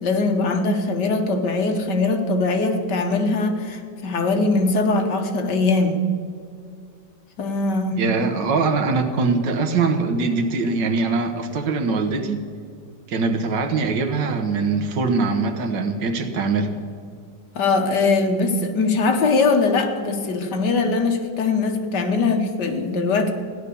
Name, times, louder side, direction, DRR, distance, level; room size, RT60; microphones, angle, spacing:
voice 1, 0.0-6.0 7.4-8.0 17.6-23.3, left 3 dB, 65° left, 5 dB, 1.9 m, -21 dB
voice 2, 8.0-12.4 13.1-16.7, right 4 dB, 75° right, 7 dB, 1.8 m, -22 dB
15.5 x 11.0 x 6.9 m, 2.3 s
omnidirectional pair, 2.0 m